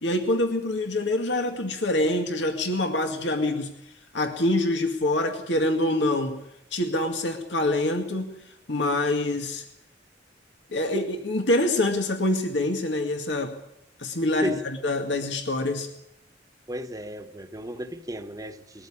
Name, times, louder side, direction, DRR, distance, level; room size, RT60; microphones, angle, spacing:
voice 1, 0.0-3.7 4.1-6.4 6.7-8.3 8.7-9.6 10.7-13.6 14.0-15.9, left 1 dB, 80° left, 2.2 m, -25 dB
voice 2, 16.7-18.9, right 1 dB, 20° right, 1.2 m, -34 dB
21.5 x 14.0 x 10.0 m
head